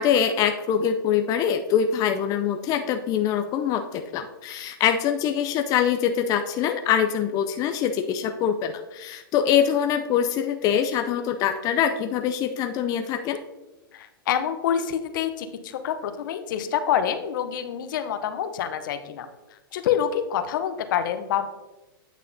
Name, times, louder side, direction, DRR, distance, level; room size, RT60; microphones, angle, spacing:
voice 1, 0.0-13.4, left 8 dB, 30° left, 6 dB, 0.4 m, -24 dB
voice 2, 13.9-21.5, left 9 dB, 60° left, 9 dB, 0.7 m, -27 dB
9.0 x 6.2 x 2.7 m, 1.1 s
hypercardioid pair, 115°, 12 cm